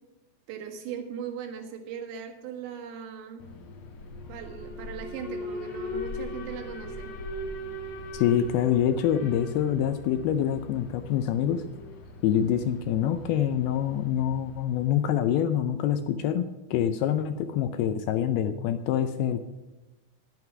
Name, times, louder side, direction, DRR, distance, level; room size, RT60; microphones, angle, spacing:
voice 1, 0.5-3.5 4.3-7.1, right 7 dB, 80° right, 3 dB, 3.8 m, -39 dB
Alarm, 3.4-15.4, left 1 dB, 65° left, 1.6 m, -40 dB
voice 2, 8.1-11.6 12.2-19.5, left 10 dB, 85° left, 10 dB, 2.2 m, -26 dB
11.5 x 9.2 x 5.8 m, 1.1 s
omnidirectional pair, 5.0 m